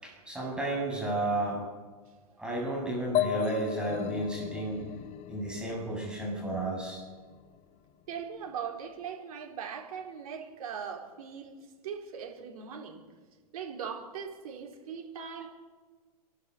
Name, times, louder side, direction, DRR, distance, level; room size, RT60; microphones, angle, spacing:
voice 1, 0.0-1.6 2.4-4.9 5.3-7.0, right 2 dB, 5° right, -2 dB, 7.8 m, -32 dB
sound 1, 3.1-6.8, left 11 dB, 35° left, 1.1 m, -34 dB
voice 2, 8.1-11.6 11.8-13.0 13.5-15.5, right 7 dB, 65° right, 2 dB, 4.3 m, -40 dB
28.0 x 12.0 x 8.5 m, 1.4 s
hypercardioid pair, 115°, 20 cm